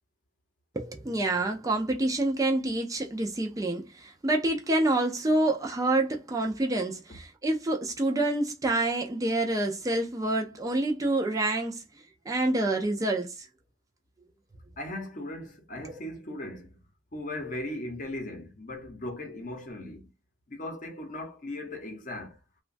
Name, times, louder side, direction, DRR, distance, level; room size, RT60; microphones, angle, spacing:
voice 1, 0.7-11.8 12.3-13.5 15.8-16.0, right 2 dB, 15° right, 0.4 m, -27 dB
voice 2, 14.8-16.8 17.1-20.1 20.5-22.4, left 1 dB, 40° left, 0.7 m, -38 dB
3.0 x 2.2 x 2.4 m
head